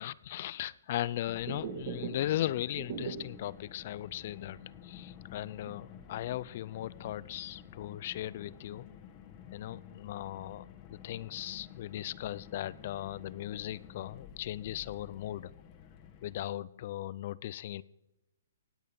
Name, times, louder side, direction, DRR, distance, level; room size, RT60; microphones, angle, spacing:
voice 1, 0.0-8.9 9.5-15.5 16.2-17.8, left 13 dB, 45° left, 0.5 m, -38 dB
Car, 1.3-16.5, left 9 dB, 30° left, 1.5 m, -51 dB
sound 1, 1.3-3.5 3.9-4.0 4.4-4.5 5.0-6.4 6.7-7.4, right 6 dB, 40° right, 1.8 m, -41 dB
17.0 x 9.2 x 5.3 m
hypercardioid pair, 155°, 0 cm